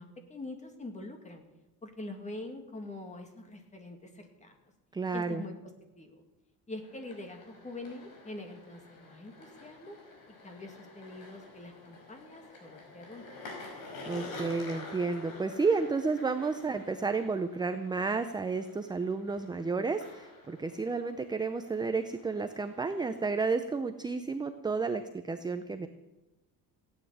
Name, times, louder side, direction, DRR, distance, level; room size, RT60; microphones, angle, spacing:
voice 1, 0.0-1.4 1.8-4.6 5.1-5.5 6.0-6.2 6.7-10.0 10.3-13.3, left 2 dB, 20° left, 4 dB, 2.3 m, -44 dB
voice 2, 4.9-5.4 14.1-25.9, right 4 dB, 10° right, 8 dB, 0.6 m, -31 dB
sound 1, 6.8-23.7, left 3 dB, 60° left, 5.2 m, -49 dB
16.5 x 9.5 x 8.7 m, 1.0 s
cardioid pair, 155°, 37 cm